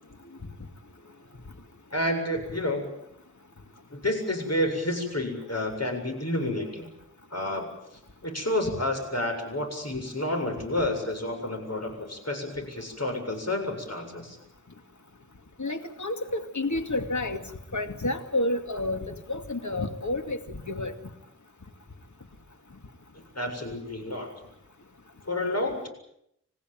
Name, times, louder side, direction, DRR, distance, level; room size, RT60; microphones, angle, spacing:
voice 1, 1.9-2.9 3.9-6.9 7.3-7.7 8.2-14.4 23.3-24.3 25.3-25.9, left 1 dB, 55° left, 4 dB, 7.5 m, -30 dB
voice 2, 15.6-17.4 17.7-20.9, left 2 dB, 75° left, 6 dB, 2.5 m, -30 dB
29.0 x 15.5 x 9.4 m, 0.76 s
wide cardioid pair, 50°, 30 cm